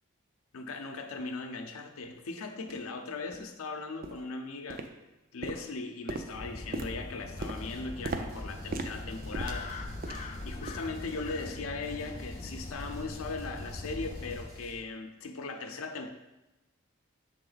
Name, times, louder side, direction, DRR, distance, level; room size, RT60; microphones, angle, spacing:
voice 1, 0.5-4.9 5.3-10.0 10.4-16.1, left 3 dB, 85° left, 5 dB, 0.6 m, -39 dB
sound 1, 2.0-2.1 2.7-2.8 3.3-3.5 4.0-4.3 4.7-5.1 5.4-10.4 10.7-10.9 11.3-11.5 12.0-12.1, right 3 dB, 40° right, 0.4 m, -40 dB
sound 2, 6.3-14.4, left 2 dB, 35° left, 0.4 m, -41 dB
sound 3, 7.4-7.9 8.3-14.8, right 1 dB, 80° right, 1.6 m, -52 dB
6.8 x 3.6 x 3.9 m, 0.99 s
head